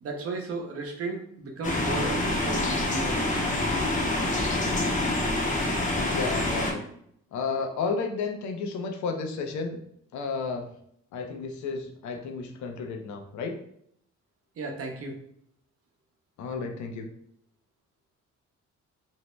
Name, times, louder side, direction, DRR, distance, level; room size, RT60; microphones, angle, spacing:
voice 1, 0.0-3.2 14.6-15.1, right 3 dB, 50° right, 1 dB, 0.7 m, -34 dB
sound 1, 1.6-6.7, left 2 dB, 25° left, 0.7 m, -26 dB
voice 2, 4.7-5.3 6.0-6.8 7.3-9.8 10.1-10.7 11.1-13.6 16.4-17.1, left 4 dB, 70° left, 4 dB, 0.6 m, -32 dB
2.6 x 2.1 x 3.0 m, 0.70 s
cardioid pair, 90°, 30 cm